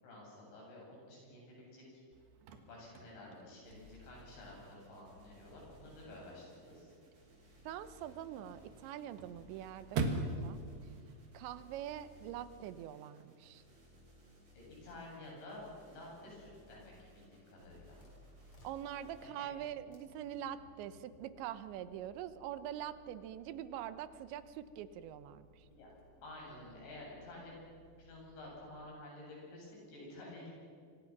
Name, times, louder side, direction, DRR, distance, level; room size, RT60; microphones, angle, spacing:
voice 1, 0.0-1.8 2.7-6.9 14.6-18.0 19.2-19.5 25.7-25.9 26.2-27.5 28.0-30.5, left 1 dB, 85° left, -3 dB, 10.5 m, -51 dB
Chirp tweet / Car / Slam, 2.1-12.1, right 3 dB, 65° right, 3.5 m, -44 dB
sound 1, 3.6-19.3, left 1 dB, 45° right, 9.1 m, -61 dB
voice 2, 7.6-10.6 11.3-13.6 18.6-25.7, right 11 dB, 85° right, 13 dB, 3.2 m, -44 dB
sound 2, 17.5-29.0, equal, 35° left, 5.0 m, -64 dB
27.0 x 24.5 x 6.0 m, 2.2 s
omnidirectional pair, 5.1 m